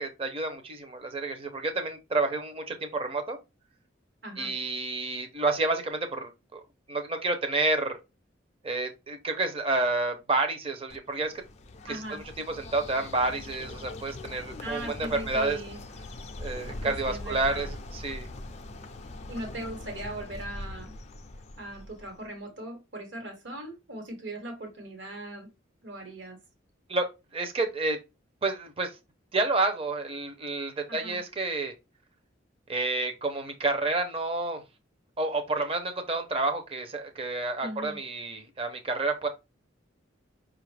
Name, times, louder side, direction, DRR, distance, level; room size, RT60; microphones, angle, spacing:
voice 1, 0.0-3.4 4.4-6.6 6.9-8.0 8.6-11.3 11.8-15.6 16.4-17.7 17.9-18.3 26.9-27.1 27.3-28.0 28.4-28.9 29.3-31.7 32.7-34.6 35.2-39.3, right 3 dB, 30° right, 0.6 m, -29 dB
voice 2, 4.2-4.6 11.9-12.2 14.6-15.8 16.8-17.7 19.3-20.9 21.6-25.5 25.8-26.4 30.9-31.2 37.6-38.0, right 1 dB, 70° right, 1.3 m, -39 dB
Bird, 10.9-22.3, left 2 dB, 35° left, 0.4 m, -41 dB
5.4 x 2.4 x 3.2 m
head